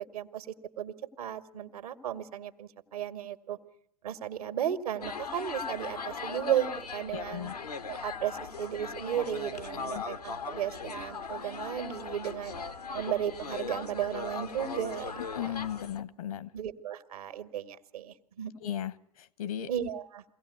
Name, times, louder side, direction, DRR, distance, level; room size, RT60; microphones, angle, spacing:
voice 1, 0.0-3.6 4.0-7.5 7.9-12.5 12.9-15.2 16.5-18.5 19.7-20.2, right 10 dB, 70° right, 9 dB, 1.9 m, -34 dB
sound 1, 5.0-16.0, left 5 dB, 90° left, 1.3 m, -39 dB
voice 2, 7.1-7.5 9.9-10.0 15.3-16.5 18.6-19.7, left 10 dB, 65° left, 18 dB, 1.2 m, -36 dB
23.5 x 17.0 x 8.3 m, 0.77 s
figure-of-eight pair, 95°, 19 cm